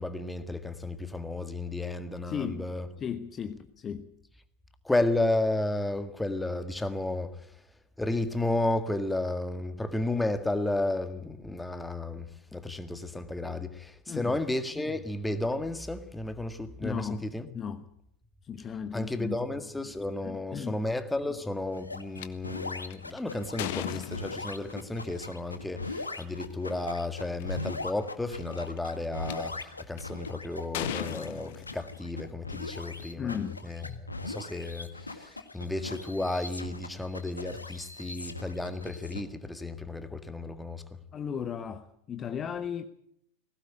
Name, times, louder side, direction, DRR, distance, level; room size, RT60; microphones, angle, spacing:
voice 1, 0.0-2.9 4.8-7.5 8.0-17.5 18.9-40.8, left 2 dB, 5° left, 1.8 m, -33 dB
voice 2, 2.3-2.7 3.0-4.1 14.1-14.4 16.8-17.3 17.5-17.8 18.4-19.4 20.2-20.8 33.2-33.6 41.1-42.9, left 7 dB, 25° left, 1.2 m, -35 dB
sound 1, 21.7-39.2, left 3 dB, 80° left, 1.7 m, -40 dB
sound 2, 22.2-22.3 22.9-24.8 26.0-26.2 26.9-27.0 27.2-27.6 28.3-29.3 30.0-30.3 30.7-32.2, left 13 dB, 50° left, 1.5 m, -37 dB
20.5 x 17.0 x 9.0 m
figure-of-eight pair, 90°, 0 cm